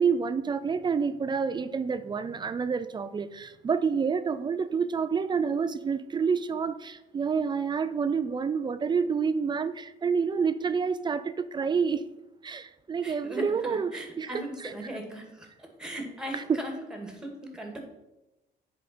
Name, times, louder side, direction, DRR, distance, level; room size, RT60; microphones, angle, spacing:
voice 1, 0.0-12.0 12.4-14.3 14.6-14.7 16.3-16.6, right 6 dB, 25° right, 12 dB, 0.4 m, -28 dB
voice 2, 13.0-17.8, right 1 dB, 5° right, 2 dB, 2.0 m, -39 dB
10.0 x 4.8 x 4.3 m, 0.98 s
cardioid pair, 110°, 17 cm